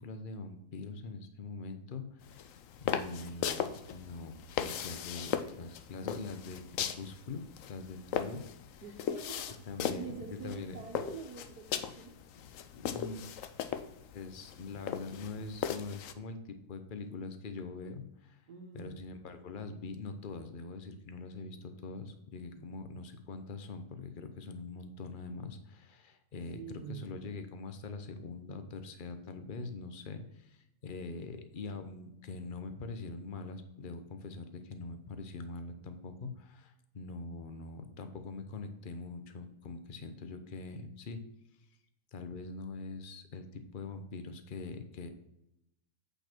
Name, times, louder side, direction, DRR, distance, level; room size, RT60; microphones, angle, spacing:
voice 1, 0.0-2.4 2.8-8.4 8.7-8.8 9.7-10.8 12.7-13.3 14.1-18.4 18.7-41.2 42.1-45.1, left 3 dB, 40° left, 8 dB, 0.9 m, -43 dB
sound 1, 2.2-16.1, left 9 dB, 65° left, 0.9 m, -38 dB
voice 2, 8.8-9.5 10.0-12.1 18.5-19.0 22.5-22.6 26.5-27.1, right 6 dB, 80° right, -2 dB, 1.6 m, -45 dB
8.5 x 5.4 x 4.5 m, 0.84 s
omnidirectional pair, 1.7 m